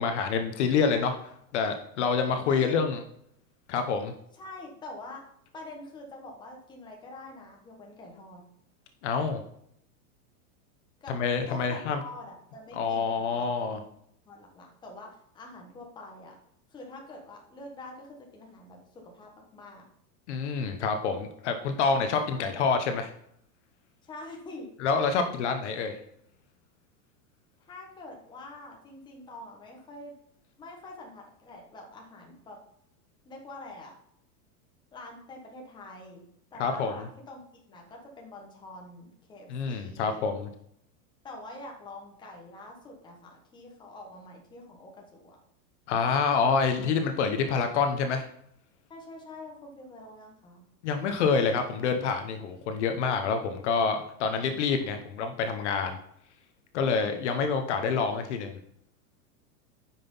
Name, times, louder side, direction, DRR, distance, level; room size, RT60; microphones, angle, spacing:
voice 1, 0.0-3.0 3.7-4.1 9.0-9.4 11.1-12.0 12.7-13.8 20.3-23.1 24.8-26.0 36.6-36.9 39.5-40.5 45.9-48.3 50.8-56.0 56.7-58.6, left 5 dB, 45° left, 7 dB, 1.0 m, -27 dB
voice 2, 2.5-2.8 4.3-5.2 5.5-8.4 11.0-11.1 11.5-13.8 14.2-16.4 16.7-19.9 22.3-22.5 24.0-24.7 27.6-30.1 30.6-32.6 33.2-33.9 34.9-36.2 36.5-40.2 41.2-45.4 48.9-50.6, left 2 dB, 10° left, 0 dB, 1.3 m, -45 dB
9.4 x 5.9 x 5.4 m, 0.70 s
supercardioid pair, 175°, 47 cm